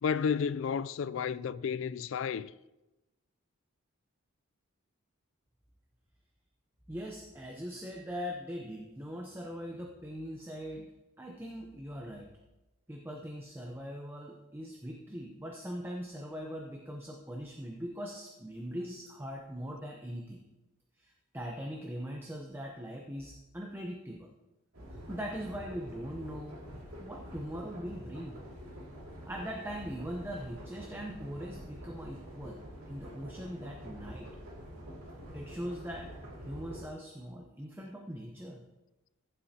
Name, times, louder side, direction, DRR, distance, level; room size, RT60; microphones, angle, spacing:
voice 1, 0.0-2.5, left 6 dB, 60° left, 0.3 m, -32 dB
voice 2, 6.9-10.9 11.2-12.3 12.9-20.4 21.0-24.3 24.9-26.6 27.0-28.4 29.3-32.6 32.9-34.3 35.3-36.1 36.4-38.7, equal, 10° right, 0.7 m, -41 dB
sound 1, 24.7-36.9, equal, 80° right, 2.4 m, -46 dB
15.0 x 7.6 x 2.8 m
head